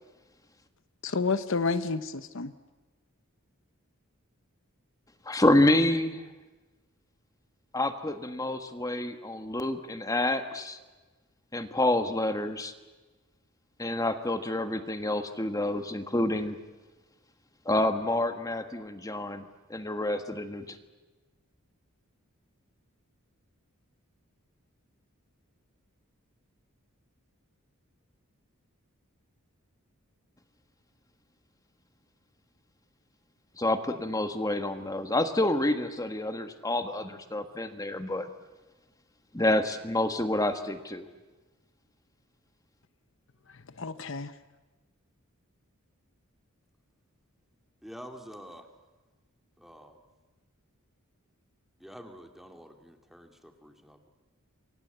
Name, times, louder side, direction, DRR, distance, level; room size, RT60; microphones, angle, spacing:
voice 1, 1.0-2.5 43.8-44.3, left 4 dB, 60° left, 0.9 m, -30 dB
voice 2, 5.2-6.2 7.7-10.8 11.5-12.7 13.8-16.6 17.6-19.4 19.7-20.8 33.6-38.3 39.3-41.1, left 1 dB, 15° left, 1.5 m, -28 dB
voice 3, 47.8-48.7 49.6-50.1 51.8-54.1, equal, ahead, 2.4 m, -48 dB
28.5 x 24.0 x 8.1 m
head